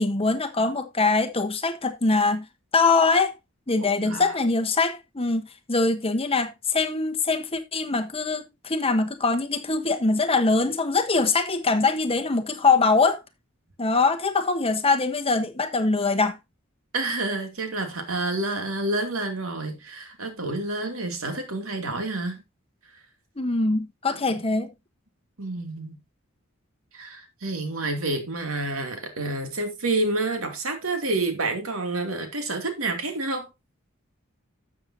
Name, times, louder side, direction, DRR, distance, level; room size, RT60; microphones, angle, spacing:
voice 1, 0.0-2.4 2.7-3.3 3.7-13.2 13.8-16.4 23.4-24.7, left 3 dB, 30° left, 1.2 m, -23 dB
voice 2, 3.8-4.3 16.9-22.4 25.4-26.0 26.9-33.5, right 2 dB, 90° right, 2.6 m, -29 dB
12.5 x 7.4 x 2.8 m
head